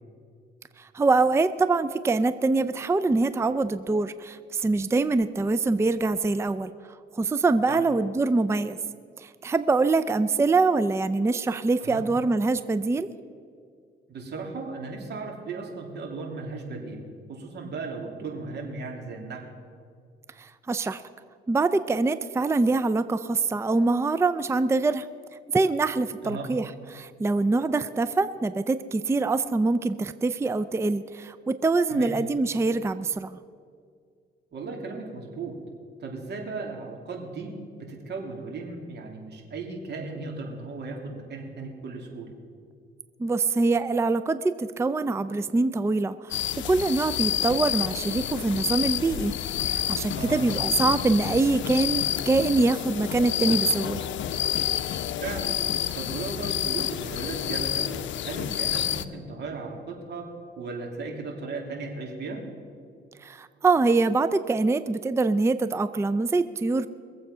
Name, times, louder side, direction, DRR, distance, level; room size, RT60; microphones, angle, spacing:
voice 1, 0.8-6.7 7.1-8.8 9.2-13.1 20.4-21.0 21.5-25.1 25.5-33.4 43.2-46.4 46.6-49.3 49.6-54.1 63.2-66.9, right 3 dB, 15° right, 13 dB, 0.4 m, -24 dB
voice 2, 14.1-17.0 17.3-19.4 26.2-26.5 31.9-32.1 34.5-35.6 36.0-37.5 37.8-42.3 50.1-50.4 55.2-55.6 55.9-60.3 60.6-62.4, right 3 dB, 60° right, 1 dB, 3.0 m, -36 dB
sound 1, 46.3-59.1, left 11 dB, 70° left, 0.6 m, -29 dB
22.5 x 7.8 x 5.5 m, 2.2 s
cardioid pair, 90°, 20 cm